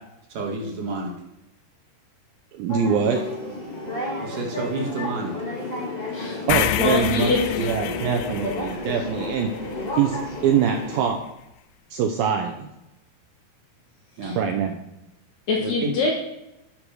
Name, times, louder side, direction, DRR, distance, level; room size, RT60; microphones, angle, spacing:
voice 1, 0.3-1.1 4.2-5.3 14.2-14.4 15.6-15.9, right 3 dB, 60° right, -1 dB, 2.7 m, -29 dB
voice 2, 2.5-3.2 6.5-9.5 9.9-10.2 10.4-11.2 11.9-12.7 14.4-14.8, right 7 dB, 75° right, 4 dB, 2.2 m, -23 dB
sound 1, 2.7-11.0, left 2 dB, 30° left, 0.7 m, -32 dB
voice 3, 6.1-6.5 6.8-7.6 14.2-14.4 15.5-16.1, left 4 dB, 65° left, -2 dB, 1.8 m, -24 dB
sound 2, 6.5-10.6, left 13 dB, 90° left, 2.7 m, -29 dB
11.5 x 5.3 x 6.3 m, 0.90 s
omnidirectional pair, 4.8 m